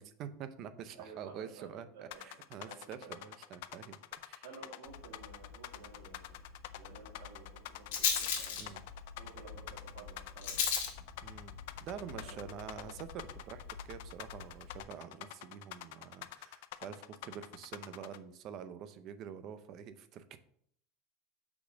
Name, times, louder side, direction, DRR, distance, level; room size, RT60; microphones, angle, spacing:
voice 1, 0.0-4.4 8.6-8.8 11.2-20.4, right 8 dB, 35° right, 11 dB, 0.5 m, -47 dB
voice 2, 0.9-2.2 2.6-3.3 4.4-6.4 6.8-8.8 9.2-10.7 12.2-13.0, right 5 dB, 70° right, -6 dB, 2.0 m, -53 dB
sound 1, 2.1-18.2, left 14 dB, 60° left, 0.4 m, -47 dB
Rattle, 4.9-14.8, left 7 dB, 80° left, 1.8 m, -40 dB
5.9 x 4.1 x 6.3 m, 0.67 s
supercardioid pair, 175°, 0 cm